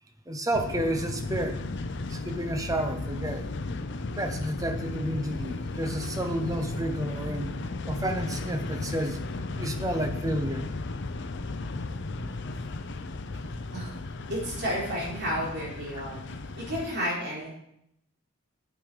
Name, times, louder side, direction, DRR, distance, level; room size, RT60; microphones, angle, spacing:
voice 1, 0.3-1.6 2.1-3.5 4.1-7.6 7.9-9.2 9.6-10.6 16.0-16.1, right 1 dB, 15° right, 6 dB, 0.8 m, -31 dB
sound 1, 0.5-16.9, left 2 dB, 55° left, 0.6 m, -35 dB
voice 2, 14.3-17.6, equal, 55° right, -3 dB, 3.7 m, -32 dB
9.4 x 8.9 x 5.0 m, 0.77 s
head